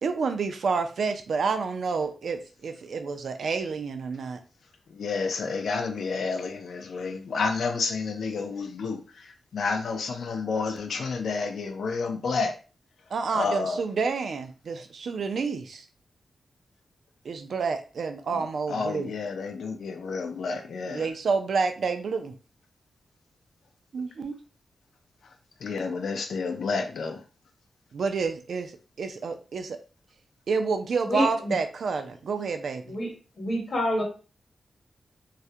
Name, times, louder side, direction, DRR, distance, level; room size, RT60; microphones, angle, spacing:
voice 1, 0.0-4.4 13.1-15.9 17.2-19.1 20.9-22.3 23.9-24.4 27.9-29.8 30.5-33.0, right 5 dB, 65° right, 0.3 m, -29 dB
voice 2, 4.9-12.6 13.3-13.8 18.3-18.4 18.7-21.1 25.6-27.2, left 4 dB, 75° left, 0.4 m, -30 dB
voice 3, 31.1-31.5 32.9-33.1 33.4-34.0, equal, 50° left, 0.9 m, -27 dB
2.3 x 2.1 x 2.6 m
wide cardioid pair, 145°, 0 cm